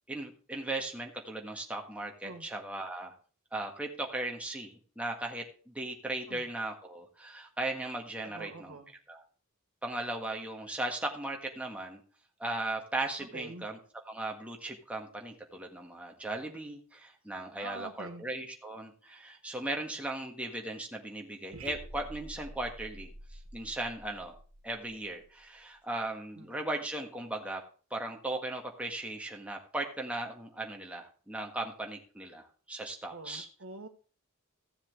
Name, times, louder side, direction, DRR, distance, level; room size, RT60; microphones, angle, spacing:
voice 1, 0.1-3.1 3.5-8.8 9.1-9.2 9.8-12.0 12.4-13.8 14.1-23.1 23.5-24.4 24.6-27.6 27.9-33.5, right 2 dB, 5° right, 1 dB, 1.7 m, -37 dB
voice 2, 8.2-8.9 13.3-13.7 17.6-18.3 26.4-26.5 33.1-33.9, right 3 dB, 70° right, 7 dB, 1.4 m, -45 dB
sound 1, 21.5-25.6, right 1 dB, 85° right, 1.0 m, -48 dB
15.0 x 7.2 x 3.5 m, 0.39 s
head